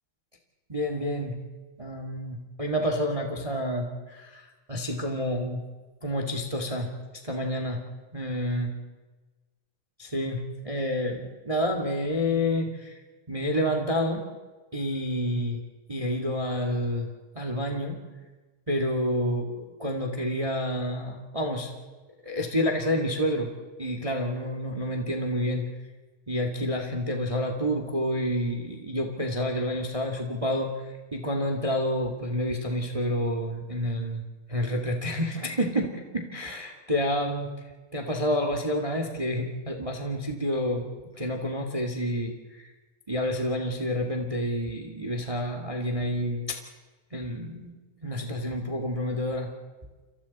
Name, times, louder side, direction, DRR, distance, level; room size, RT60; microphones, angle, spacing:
voice 1, 0.7-1.3 1.8-4.4 4.7-5.6 6.0-6.9 7.2-7.8 8.1-8.7 10.0-13.0 13.3-14.2 14.7-15.6 15.9-17.1 17.3-18.0 18.7-21.7 22.2-23.5 23.8-25.7 26.3-30.7 31.1-37.5 37.9-42.6 43.1-46.6 47.1-47.7 48.0-49.5, equal, 15° right, 3 dB, 1.6 m, -29 dB
29.5 x 27.5 x 4.2 m, 1.3 s
omnidirectional pair, 3.3 m